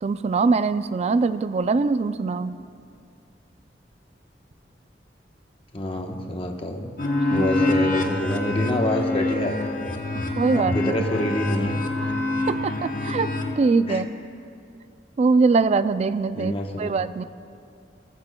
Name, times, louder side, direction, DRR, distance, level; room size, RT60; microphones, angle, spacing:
voice 1, 0.0-2.6 7.3-7.5 10.1-10.9 12.5-13.3 13.6-14.1 15.2-17.2, right 4 dB, 40° right, 13 dB, 0.3 m, -22 dB
voice 2, 5.7-6.9 7.3-9.6 10.5-11.8 13.9-14.1 16.3-16.9, left 1 dB, 35° left, 2 dB, 1.0 m, -26 dB
sound 1, 7.0-13.6, left 2 dB, 50° left, 1.0 m, -26 dB
19.0 x 14.5 x 2.3 m, 2.4 s
head